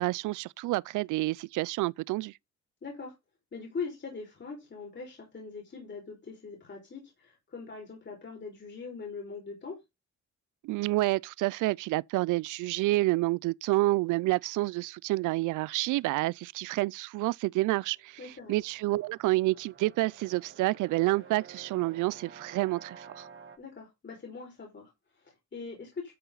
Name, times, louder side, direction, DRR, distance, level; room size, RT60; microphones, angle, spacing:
voice 1, 0.0-2.3 10.6-18.2 18.5-23.3, right 19 dB, 85° right, 0.5 m, -29 dB
voice 2, 2.8-3.1 3.5-9.8 18.2-18.6 23.6-26.1, left 4 dB, 40° left, 5.3 m, -42 dB
sound 1, 17.8-23.6, right 6 dB, 40° right, 2.9 m, -51 dB
12.5 x 6.8 x 4.0 m
cardioid pair, 90°, 30 cm